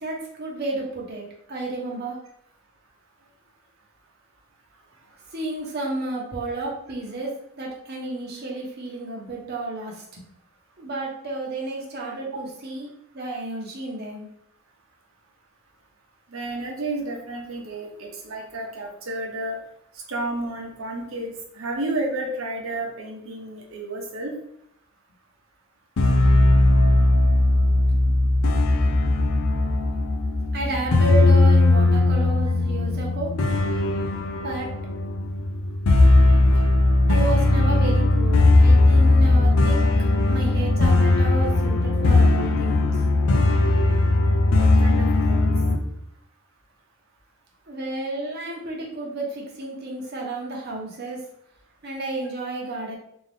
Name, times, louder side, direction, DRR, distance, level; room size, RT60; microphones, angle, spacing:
voice 1, 0.0-2.2 5.3-10.2 10.8-14.3 30.5-33.3 34.4-34.7 36.5-36.6 37.1-39.9 40.3-43.0 47.7-51.2 51.8-53.0, right 2 dB, 50° right, -2 dB, 1.0 m, -31 dB
voice 2, 16.3-19.6 20.1-24.3 44.6-45.5 52.7-52.8, right 2 dB, 75° right, 1 dB, 0.9 m, -31 dB
sound 1, 26.0-45.8, left 2 dB, 85° left, 0.5 m, -18 dB
3.9 x 2.7 x 3.4 m, 0.73 s
head